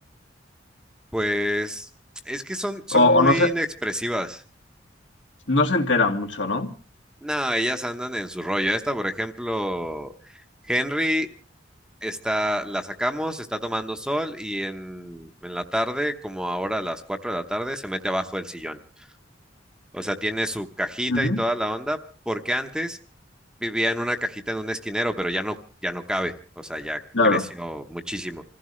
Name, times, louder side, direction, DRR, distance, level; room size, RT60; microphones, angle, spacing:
voice 1, 1.1-1.9 2.2-4.4 7.2-11.3 12.0-18.8 19.9-22.0 22.3-23.0 23.6-25.6 25.8-28.4, equal, 5° right, 6 dB, 1.0 m, -28 dB
voice 2, 2.9-3.5 5.5-6.7 21.1-21.4 27.1-27.4, left 2 dB, 80° left, 3 dB, 2.2 m, -20 dB
26.5 x 15.0 x 3.2 m, 0.37 s
head